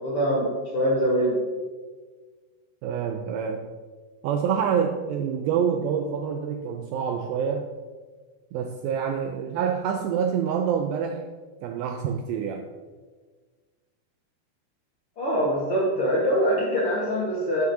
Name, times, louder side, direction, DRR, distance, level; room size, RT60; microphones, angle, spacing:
voice 1, 0.0-1.4 15.2-17.6, equal, 60° left, -6 dB, 1.5 m, -24 dB
voice 2, 2.8-3.7 4.2-7.7 8.5-11.3 11.6-12.7, right 7 dB, 85° right, 5 dB, 2.1 m, -27 dB
10.0 x 7.8 x 2.7 m, 1.4 s
omnidirectional pair, 4.6 m